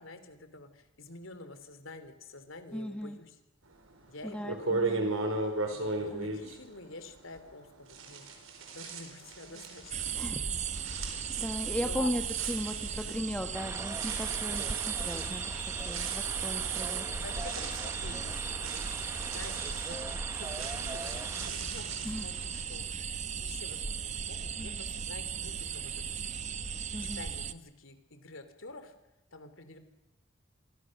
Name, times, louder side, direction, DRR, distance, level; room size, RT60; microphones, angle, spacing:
voice 1, 0.0-3.3 4.1-4.9 5.7-8.3 8.7-9.9 11.0-11.2 11.8-12.1 17.0-20.0 20.4-26.2 26.9-28.9 29.3-29.8, left 2 dB, 70° left, 9 dB, 3.2 m, -48 dB
voice 2, 2.7-3.2 4.2-5.1 5.8-6.3 10.1-11.0 11.4-17.1 22.0-22.3 24.6-24.8 26.9-27.3, equal, 5° left, 4 dB, 1.4 m, -37 dB
sound 1, 3.9-4.0 4.4-7.6 7.9-22.6, right 3 dB, 80° right, 4.9 m, -38 dB
sound 2, 9.9-27.5, right 7 dB, 35° right, 1.0 m, -36 dB
sound 3, 13.5-21.5, right 3 dB, 15° right, 1.1 m, -42 dB
28.0 x 23.5 x 6.6 m, 0.96 s
head